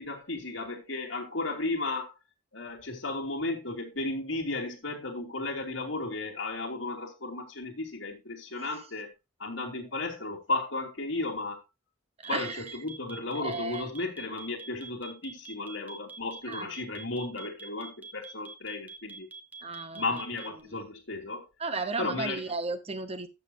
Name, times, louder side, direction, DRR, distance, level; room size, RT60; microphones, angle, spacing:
voice 1, 0.0-2.1 2.5-9.1 9.4-11.6 12.3-19.3 19.9-21.5 22.0-22.4, left 2 dB, 85° left, 2.8 m, -34 dB
sound 1, 12.2-20.6, right 4 dB, 10° right, 1.3 m, -45 dB
voice 2, 12.2-12.7 13.4-13.9 16.5-16.7 19.6-20.2 20.6-20.8 21.6-23.3, right 3 dB, 30° right, 0.9 m, -35 dB
12.5 x 7.6 x 2.8 m
head